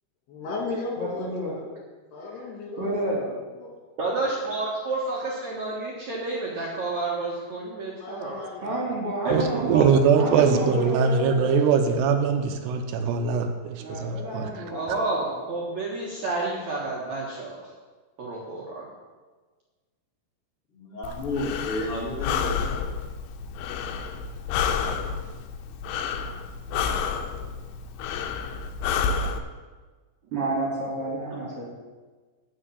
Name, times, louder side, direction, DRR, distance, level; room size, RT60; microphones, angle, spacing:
voice 1, 0.3-1.7 2.1-4.0 7.9-9.3, left 3 dB, 70° left, -1 dB, 4.4 m, -36 dB
voice 2, 1.0-1.5 2.8-3.3 8.6-9.7 10.2-11.6 13.8-15.3 30.3-31.7, right 1 dB, 40° right, -4 dB, 2.7 m, -30 dB
voice 3, 4.0-8.4 9.2-9.9 14.7-17.7 18.2-18.9 31.3-31.4, right 3 dB, 55° right, -4 dB, 2.1 m, -30 dB
voice 4, 9.3-14.6, right 6 dB, 80° right, 6 dB, 2.8 m, -22 dB
voice 5, 10.3-10.7 20.8-22.8, left 1 dB, 40° left, -5 dB, 2.4 m, -31 dB
Breathing, 21.0-29.4, left 6 dB, 90° left, 2.9 m, -30 dB
11.0 x 5.7 x 8.3 m, 1.4 s
omnidirectional pair, 5.0 m